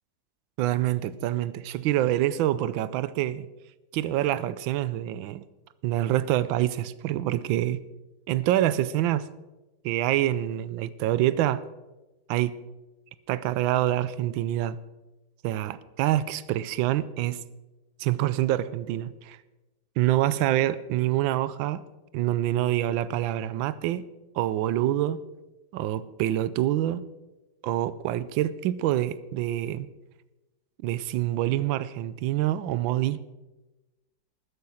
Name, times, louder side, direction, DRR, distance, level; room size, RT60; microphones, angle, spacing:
voice 1, 0.6-3.5 3.9-5.4 5.8-7.8 8.3-9.3 9.8-11.6 12.3-12.5 13.3-14.8 15.4-17.4 18.0-19.4 20.0-21.8 22.1-24.0 24.3-25.2 25.7-27.0 27.6-29.9 30.8-33.2, right 13 dB, 85° right, 1.4 m, -26 dB
13.5 x 9.7 x 6.3 m
omnidirectional pair, 2.1 m